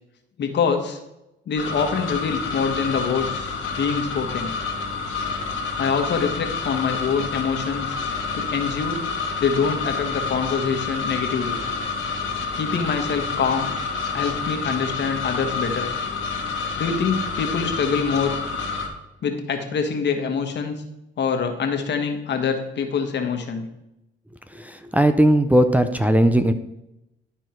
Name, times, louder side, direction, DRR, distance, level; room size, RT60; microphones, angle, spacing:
voice 1, 0.4-1.0 1.5-4.5 5.8-8.0 8.3-9.0 9.4-11.6 12.5-13.7 14.1-15.9 16.8-18.3 19.2-20.8 21.2-23.7, left 6 dB, 60° left, 5 dB, 1.4 m, -25 dB
sound 1, 1.6-18.9, left 4 dB, 80° left, 1.8 m, -28 dB
voice 2, 24.6-26.5, right 1 dB, 10° right, 7 dB, 0.5 m, -18 dB
12.0 x 4.5 x 4.5 m, 0.89 s
cardioid pair, 90°, 20 cm